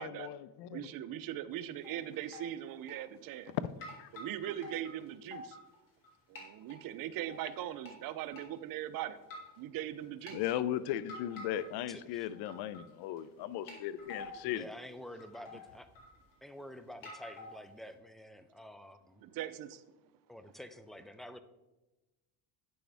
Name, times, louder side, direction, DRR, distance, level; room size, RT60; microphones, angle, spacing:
voice 1, 0.0-0.9 3.5-4.1 10.3-14.7, left 11 dB, 70° left, 17 dB, 0.5 m, -37 dB
voice 2, 0.7-3.5 4.1-5.6 6.3-9.2 9.6-10.4 19.2-19.8, right 12 dB, 55° right, 13 dB, 0.6 m, -40 dB
sound 1, 1.5-2.0 2.2-2.5 2.9-3.5 3.8-6.1 6.4-6.8 7.3-7.9 8.3-8.4 9.2-9.6 10.0-10.4 11.1-11.9 12.2-12.9 13.2-13.3 13.7-14.5 14.9-15.0 15.2-16.5 17.0-17.9, left 2 dB, 50° left, 3.0 m, -48 dB
voice 3, 11.9-12.3 14.4-15.9 16.4-19.2 20.3-21.4, equal, ahead, 10 dB, 0.4 m, -49 dB
9.1 x 6.2 x 3.4 m, 1.0 s
cardioid pair, 105°, 41 cm